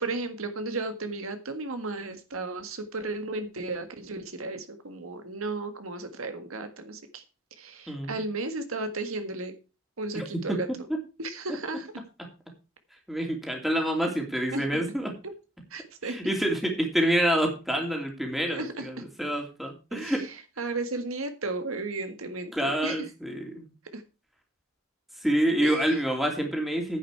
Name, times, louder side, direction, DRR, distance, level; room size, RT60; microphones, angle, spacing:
voice 1, 0.0-7.2 7.6-9.5 10.0-10.7 11.2-11.9 14.5-14.6 15.7-16.2 18.5-18.9 19.9-20.2 20.6-23.0 23.9-24.0 25.6-25.8, right 3 dB, 80° right, 8 dB, 1.6 m, -34 dB
voice 2, 7.9-8.2 10.1-10.6 13.1-15.1 16.0-20.2 22.5-23.7 25.1-27.0, right 1 dB, ahead, 1 dB, 2.7 m, -27 dB
10.0 x 8.8 x 4.7 m, 0.31 s
head